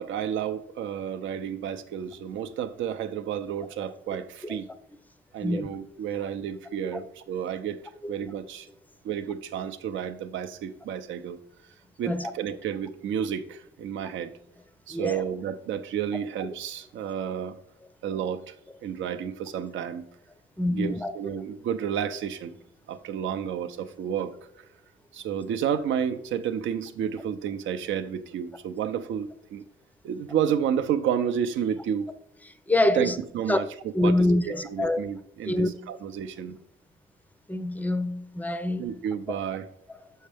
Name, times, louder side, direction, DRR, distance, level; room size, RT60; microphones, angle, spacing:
voice 1, 0.0-4.7 5.3-7.8 8.1-8.7 9.0-11.4 12.0-14.3 14.9-17.6 18.0-18.5 18.8-20.1 20.7-22.5 22.9-24.7 25.1-29.6 30.0-32.1 32.9-36.6 38.8-39.7, right 8 dB, 75° right, 0.6 m, -31 dB
voice 2, 14.9-15.2 20.6-21.1 32.7-33.1 33.5-33.6 33.9-35.0 35.4-35.7 37.5-38.9 40.0-40.1, left 1 dB, 10° left, 0.5 m, -25 dB
6.3 x 5.5 x 3.5 m
cardioid pair, 90°, 20 cm